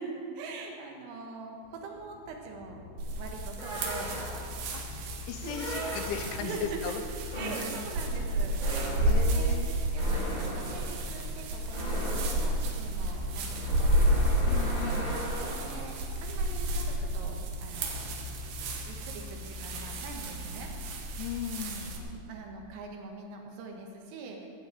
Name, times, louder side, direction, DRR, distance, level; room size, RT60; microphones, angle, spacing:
voice 1, 0.0-2.8 3.2-4.6 5.4-5.6 6.4-6.9 7.3-16.0 16.2-17.4 17.6-18.2 18.9-20.7 21.9-24.5, right 4 dB, 85° right, 1 dB, 4.1 m, -43 dB
sound 1, 1.6-19.1, left 1 dB, 45° right, 1.5 m, -49 dB
sound 2, 3.0-22.0, right 1 dB, 70° right, 3.0 m, -31 dB
sound 3, 3.6-4.7 5.5-6.5 7.3-16.0, equal, 50° left, 0.5 m, -39 dB
voice 2, 5.3-7.0 7.5-7.8 9.0-9.8 14.5-15.1 21.2-22.0, left 9 dB, 80° left, 6 dB, 2.9 m, -37 dB
16.0 x 5.9 x 8.2 m, 2.4 s
omnidirectional pair, 5.8 m